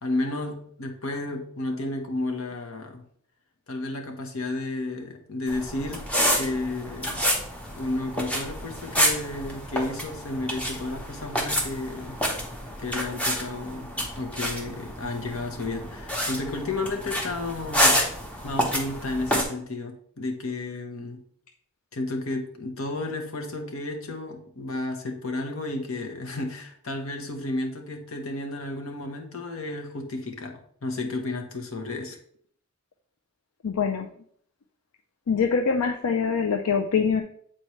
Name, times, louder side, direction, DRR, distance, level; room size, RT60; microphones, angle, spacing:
voice 1, 0.0-3.0 3.7-6.0 6.3-7.3 7.8-12.2 12.8-18.0 18.4-21.2 21.9-32.2, left 2 dB, 70° left, 4 dB, 1.1 m, -32 dB
sound 1, 5.5-19.4, equal, 5° left, 0.9 m, -28 dB
voice 2, 33.6-34.1 35.3-37.2, left 5 dB, 85° left, 5 dB, 0.5 m, -24 dB
7.8 x 4.3 x 3.1 m, 0.63 s
head